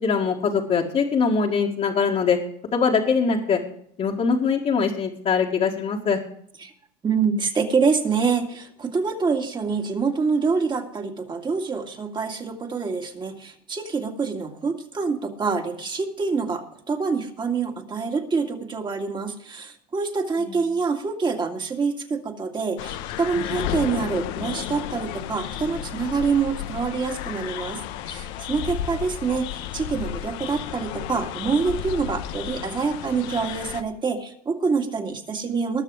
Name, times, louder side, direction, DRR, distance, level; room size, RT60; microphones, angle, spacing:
voice 1, 0.0-2.4 2.7-3.6 4.0-6.2 20.4-20.6, left 5 dB, 35° left, -2 dB, 2.0 m, -22 dB
voice 2, 7.0-27.8 28.0-35.8, right 5 dB, 20° right, 3 dB, 2.2 m, -26 dB
sound 1, 22.8-33.8, left 11 dB, 65° left, 1.1 m, -33 dB
20.0 x 6.7 x 4.9 m, 0.68 s
supercardioid pair, 115°, 20 cm